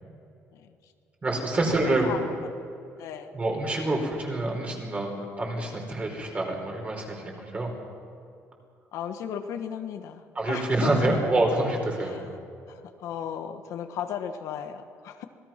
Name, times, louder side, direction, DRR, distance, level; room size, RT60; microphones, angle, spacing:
voice 1, 1.2-2.2 3.3-7.7 10.3-12.2, right 2 dB, 25° right, 1 dB, 4.8 m, -27 dB
voice 2, 1.8-2.2 3.0-3.3 8.9-11.2 12.1-12.3 12.7-15.2, left 9 dB, 75° left, 6 dB, 1.5 m, -35 dB
26.5 x 18.5 x 6.0 m, 2.6 s
cardioid pair, 145°, 5 cm